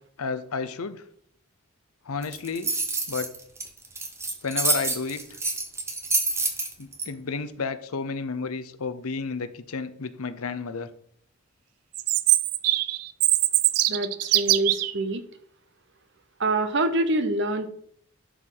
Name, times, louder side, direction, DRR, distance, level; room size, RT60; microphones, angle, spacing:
voice 1, 0.2-1.0 2.1-2.7 3.1-3.3 4.4-5.2 6.8-10.9, left 4 dB, 80° left, 12 dB, 0.7 m, -31 dB
sound 1, 2.2-7.0, right 3 dB, 10° right, 0.8 m, -27 dB
Chirp tweet, 11.9-14.9, right 16 dB, 90° right, 0.4 m, -22 dB
voice 2, 13.9-15.2 16.4-17.7, right 2 dB, 55° right, 10 dB, 0.9 m, -25 dB
11.5 x 4.7 x 3.9 m, 0.64 s
head